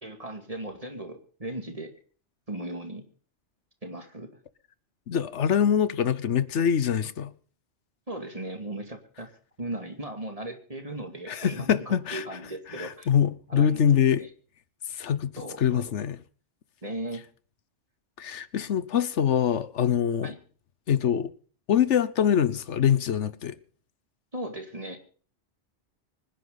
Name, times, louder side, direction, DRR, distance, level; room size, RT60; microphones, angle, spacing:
voice 1, 0.0-1.9 2.5-3.0 3.8-4.4 8.1-9.3 9.6-13.1 13.5-14.3 15.4-15.8 16.8-17.2 20.2-20.4 24.3-25.0, right 1 dB, 30° right, 2.5 m, -37 dB
voice 2, 5.1-7.3 11.3-12.2 12.8-14.2 14.9-16.2 18.2-20.3 20.9-21.3 21.7-23.6, left 8 dB, 75° left, 1.2 m, -24 dB
25.5 x 10.5 x 4.0 m
omnidirectional pair, 1.2 m